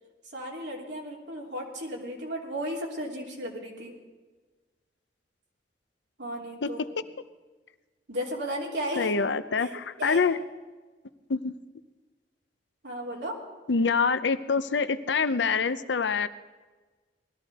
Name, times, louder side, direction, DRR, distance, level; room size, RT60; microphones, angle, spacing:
voice 1, 0.2-3.9 6.2-6.8 8.1-9.1 9.6-10.2 12.8-13.4, equal, 85° right, -2 dB, 3.3 m, -35 dB
voice 2, 9.0-10.4 11.3-11.5 13.7-16.3, left 5 dB, 85° left, 12 dB, 0.7 m, -25 dB
19.5 x 13.5 x 4.3 m, 1.3 s
head